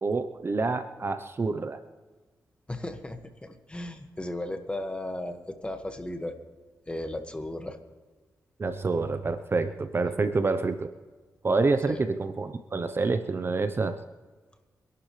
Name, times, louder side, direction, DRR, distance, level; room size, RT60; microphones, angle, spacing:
voice 1, 0.0-1.8 8.6-10.9 11.4-14.0, right 3 dB, 40° right, 10 dB, 0.8 m, -27 dB
voice 2, 2.7-6.4 6.9-7.8 11.9-12.0, left 1 dB, 15° left, 6 dB, 1.8 m, -35 dB
25.5 x 11.5 x 3.3 m, 1.3 s
cardioid pair, 75°, 6 cm